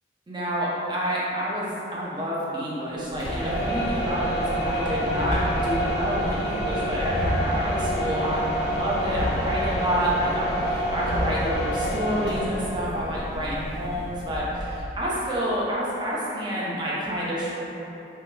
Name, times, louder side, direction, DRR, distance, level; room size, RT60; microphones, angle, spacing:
voice 1, 0.3-17.6, equal, 25° right, -6 dB, 0.5 m, -28 dB
sound 1, 3.1-15.0, equal, 60° left, 0.5 m, -27 dB
2.7 x 2.2 x 3.1 m, 2.9 s
head